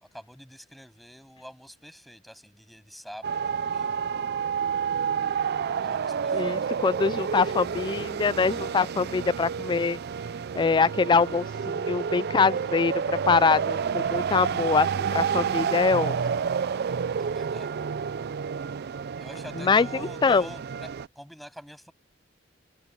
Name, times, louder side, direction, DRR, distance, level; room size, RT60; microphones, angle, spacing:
voice 1, 0.0-4.0 5.8-6.6 17.2-17.8 19.2-21.9, equal, ahead, 7.6 m, -46 dB
sound 1, 3.2-21.1, right 6 dB, 55° right, 0.4 m, -29 dB
voice 2, 6.3-10.0 10.6-16.4 19.6-19.9 20.2-20.5, left 5 dB, 25° left, 0.3 m, -24 dB
open air
head